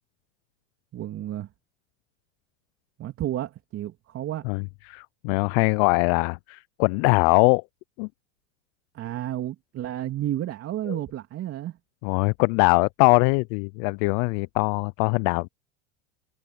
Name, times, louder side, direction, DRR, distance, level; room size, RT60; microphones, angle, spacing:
voice 1, 0.9-1.5 3.0-4.4 8.9-11.8, right 12 dB, 40° right, 3.1 m, -31 dB
voice 2, 4.9-7.6 8.0-8.1 10.9-11.0 12.0-15.5, left 32 dB, 55° left, 0.5 m, -22 dB
hypercardioid pair, 95°, 34 cm